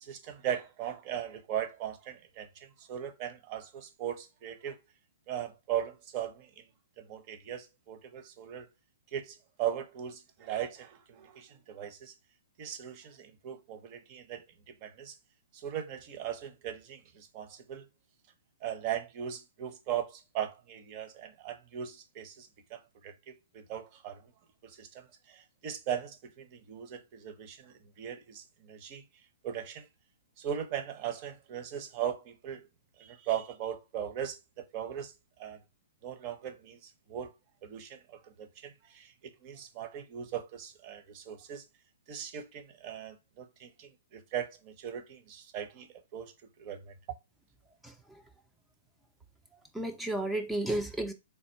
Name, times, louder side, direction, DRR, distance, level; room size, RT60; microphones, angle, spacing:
voice 1, 0.0-4.8 5.3-6.6 7.0-8.7 9.1-12.1 12.6-15.1 15.5-17.9 18.6-24.3 24.6-29.0 29.4-29.9 30.4-32.7 33.0-35.1 35.4-35.6 36.0-37.3 37.6-41.6 42.1-46.3 46.6-46.9, right 10 dB, 40° right, 0.7 m, -39 dB
voice 2, 47.8-48.2 49.7-51.1, right 1 dB, 5° right, 0.4 m, -33 dB
3.4 x 2.4 x 4.4 m
hypercardioid pair, 130°, 0 cm